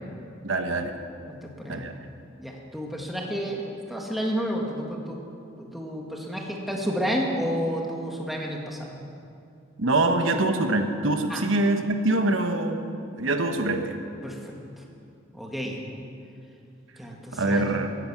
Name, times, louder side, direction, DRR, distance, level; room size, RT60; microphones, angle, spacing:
voice 1, 0.4-1.0 1.7-1.9 9.8-12.8 13.2-13.9 17.3-17.9, right 2 dB, 85° right, 6 dB, 1.2 m, -24 dB
voice 2, 1.3-1.9 2.4-5.2 5.6-8.9 10.3-10.4 11.3-11.4 14.2-14.5 15.3-15.8 17.0-17.9, equal, ahead, -1 dB, 1.7 m, -31 dB
15.5 x 10.5 x 7.3 m, 2.5 s
head